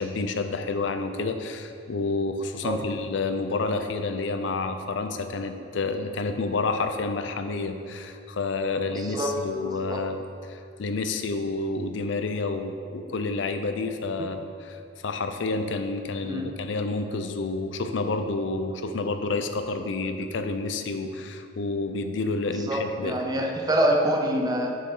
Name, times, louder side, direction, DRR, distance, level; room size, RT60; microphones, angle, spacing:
voice 1, 0.0-23.2, left 3 dB, 70° left, 8 dB, 0.5 m, -29 dB
voice 2, 8.9-9.3 9.6-10.0 14.2-14.3 16.2-16.5 22.7-24.7, right 1 dB, 20° right, 1 dB, 0.6 m, -26 dB
6.5 x 6.5 x 3.8 m, 2.4 s
head